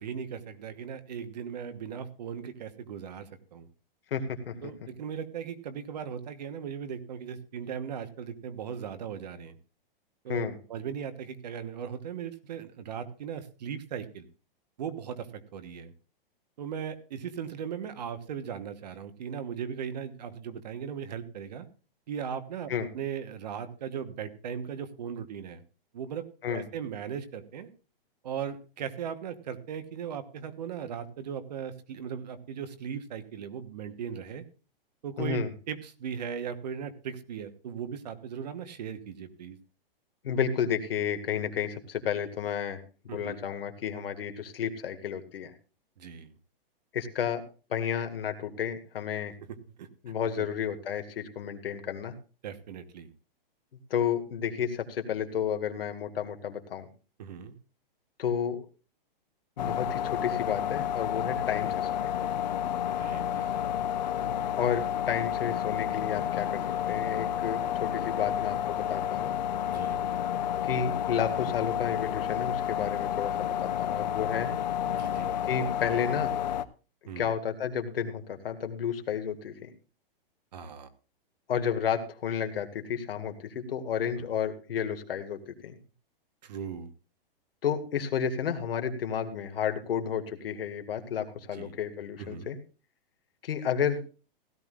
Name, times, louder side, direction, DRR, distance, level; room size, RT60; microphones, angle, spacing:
voice 1, 0.0-3.7 4.6-9.5 10.2-14.3 14.8-15.9 16.6-21.7 22.1-25.6 25.9-27.7 28.2-34.4 35.0-35.4 35.7-39.6 43.1-43.4 46.0-46.3 49.5-49.9 50.4-50.5 52.4-53.1 57.2-57.5 63.0-63.6 69.7-70.0 74.8-75.3 77.1-77.3 80.5-80.9 86.4-86.9 91.5-91.7 92.2-92.5, right 7 dB, 45° right, 11 dB, 1.2 m, -38 dB
voice 2, 4.1-4.5 10.3-10.6 22.7-22.9 26.4-26.7 35.2-35.5 40.2-45.5 46.9-47.4 47.7-49.3 50.0-52.1 53.9-56.9 58.2-58.7 59.6-62.1 64.5-66.6 66.9-69.3 70.6-74.5 75.5-76.3 77.2-79.7 81.5-85.8 87.6-92.6 93.4-94.0, left 8 dB, 75° left, 6 dB, 2.0 m, -31 dB
sound 1, 59.6-76.7, left 10 dB, 50° left, 0.7 m, -30 dB
16.5 x 13.0 x 2.5 m, 0.35 s
hypercardioid pair, 180°, 29 cm